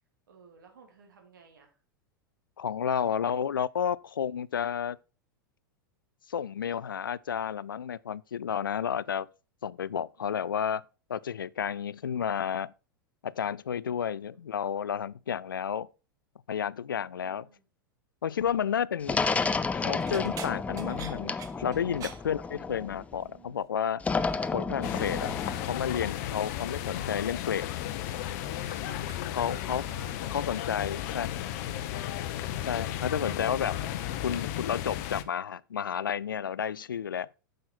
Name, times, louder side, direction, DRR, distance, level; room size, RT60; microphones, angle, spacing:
voice 1, 0.3-1.8 14.3-14.8 17.1-17.6 23.1-23.7 26.8-27.3 29.5-32.1, right 5 dB, 65° right, 2.9 m, -57 dB
voice 2, 2.6-5.0 6.3-9.3 9.6-10.8 11.1-12.7 13.2-15.9 16.5-17.5 18.2-19.2 19.7-24.0 24.5-25.3 25.7-27.7 29.3-29.8 30.3-31.3 32.6-33.8 34.2-37.3, left 8 dB, 75° left, 0.4 m, -31 dB
sound 1, 19.0-19.4 20.0-23.0 23.3-23.7 24.0-24.5 25.2-26.6 26.9-27.7 28.0-29.5 30.4-30.7 31.1-33.2 33.4-34.0 34.3-34.5 35.8-35.9, right 8 dB, 30° right, 1.2 m, -51 dB
sound 2, 19.1-23.2 24.0-25.7, left 4 dB, 10° left, 0.6 m, -31 dB
sound 3, 24.8-35.2, left 12 dB, 50° left, 0.9 m, -34 dB
9.4 x 6.5 x 4.1 m
figure-of-eight pair, 90°, 11 cm